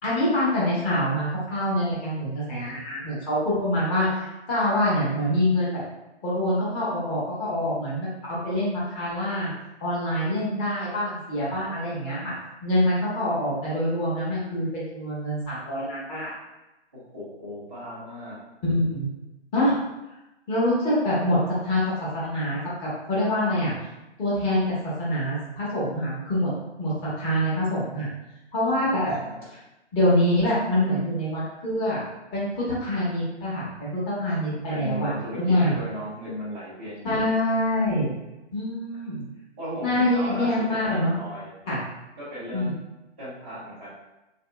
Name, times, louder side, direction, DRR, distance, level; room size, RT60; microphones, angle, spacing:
voice 1, 0.0-5.8 6.2-8.1 8.4-9.5 9.8-12.3 12.6-16.3 18.6-19.0 19.5-19.8 20.5-23.7 24.2-26.5 26.8-28.1 28.5-29.1 29.9-32.0 32.3-35.1 35.4-35.7 37.0-38.1 38.5-39.2 39.8-41.1 41.7-41.8 42.5-42.7, left 1 dB, 15° left, -8 dB, 0.9 m, -25 dB
voice 2, 16.9-18.4 28.8-29.4 34.7-37.3 39.6-41.5 42.2-42.8 43.2-43.9, equal, 10° right, -16 dB, 0.3 m, -36 dB
3.4 x 2.7 x 2.2 m, 0.98 s
figure-of-eight pair, 130°, 34 cm